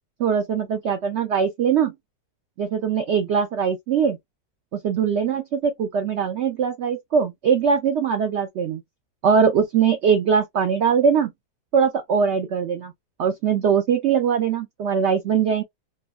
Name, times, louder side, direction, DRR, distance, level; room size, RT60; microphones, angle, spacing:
voice 1, 0.2-1.9 2.6-4.2 4.7-8.8 9.2-11.3 11.7-12.9 13.2-15.6, right 6 dB, 80° right, 0.6 m, -21 dB
2.9 x 2.2 x 2.3 m
omnidirectional pair, 1.8 m